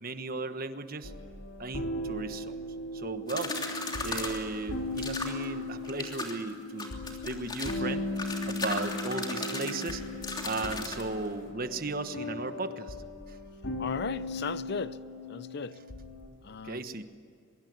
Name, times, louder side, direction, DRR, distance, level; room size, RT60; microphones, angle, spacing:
voice 1, 0.0-1.1 1.6-2.6 2.9-3.5 4.0-8.1 8.5-10.0 10.4-13.0 13.3-13.4 16.6-17.0, right 3 dB, 45° right, 1.3 m, -36 dB
sound 1, 1.0-16.3, left 1 dB, 85° left, 3.0 m, -38 dB
sound 2, 3.3-4.4 5.0-5.4 5.8-6.3 6.8-7.8 8.2-11.0, left 2 dB, 20° left, 3.1 m, -36 dB
voice 2, 13.8-15.0 15.3-15.7 16.4-16.8, left 4 dB, 55° left, 0.6 m, -36 dB
23.5 x 23.0 x 9.5 m
head